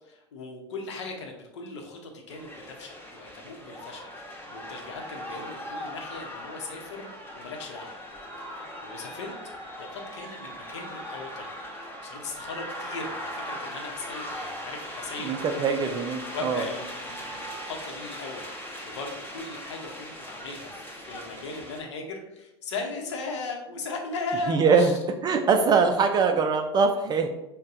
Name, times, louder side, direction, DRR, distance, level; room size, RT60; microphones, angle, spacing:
voice 1, 0.0-8.0 8.5-9.4 9.8-11.5 12.0-15.9 16.3-18.4 18.8-25.0, left 3 dB, 75° left, 2 dB, 0.7 m, -38 dB
sound 1, 2.3-21.8, equal, 15° left, 1.0 m, -39 dB
voice 2, 15.2-16.6 24.5-25.0 25.2-27.3, right 5 dB, 30° right, 5 dB, 0.3 m, -22 dB
5.2 x 2.2 x 2.5 m, 0.93 s
hypercardioid pair, 80°, 15 cm